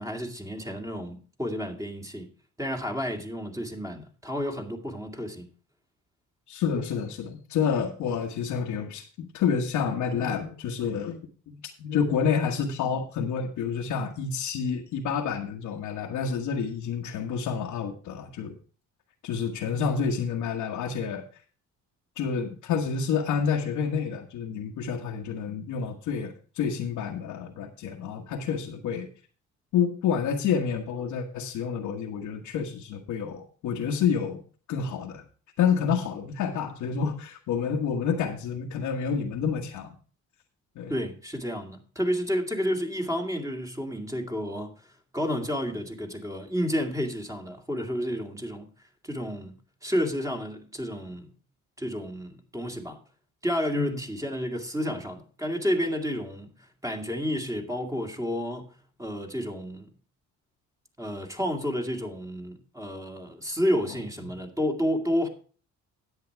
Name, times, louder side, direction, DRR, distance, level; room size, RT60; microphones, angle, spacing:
voice 1, 0.0-2.3 2.6-5.5 40.9-44.7 45.1-48.7 49.0-49.5 49.8-51.3 51.8-53.0 53.4-56.5 56.8-58.7 59.0-59.9 61.0-65.3, equal, 10° right, 2.3 m, -30 dB
voice 2, 6.5-18.5 19.2-21.2 22.1-29.1 29.7-34.4 34.7-35.2 35.6-39.9 40.7-40.9 53.7-54.0, left 6 dB, 90° left, 1.5 m, -29 dB
10.5 x 8.2 x 4.6 m
cardioid pair, 90°, 30 cm